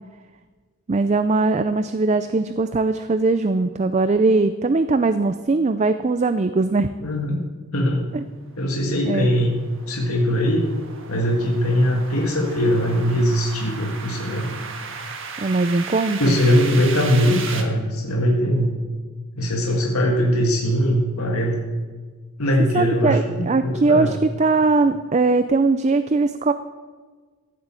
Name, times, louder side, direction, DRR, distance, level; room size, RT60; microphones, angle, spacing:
voice 1, 0.9-6.9 8.1-8.2 9.1-9.3 15.4-16.4 22.7-26.5, right 3 dB, 30° right, 11 dB, 0.4 m, -20 dB
voice 2, 7.0-7.4 7.7-8.1 8.6-9.5 9.9-10.7 11.1-14.6 16.2-18.7 19.4-21.6 22.4-24.2, equal, 75° left, -1 dB, 1.8 m, -21 dB
sound 1, 8.5-17.6, right 5 dB, 60° right, 1.6 m, -36 dB
14.5 x 8.2 x 7.6 m, 1.5 s
head